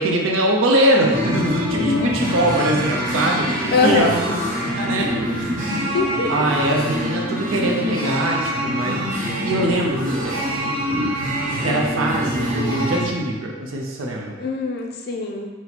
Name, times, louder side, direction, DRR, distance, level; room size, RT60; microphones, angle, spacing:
voice 1, 0.0-4.4 4.8-5.1 5.4-5.6 6.3-9.0 9.4-10.4 10.9-11.2 11.6-14.3, right 1 dB, 75° right, 0 dB, 0.5 m, -22 dB
sound 1, 1.1-13.0, equal, 35° right, 0.9 m, -25 dB
voice 2, 1.8-2.3 3.7-4.2 5.9-6.3 14.4-15.5, left 4 dB, 50° left, 1 dB, 0.4 m, -22 dB
4.0 x 2.1 x 4.3 m, 1.3 s
head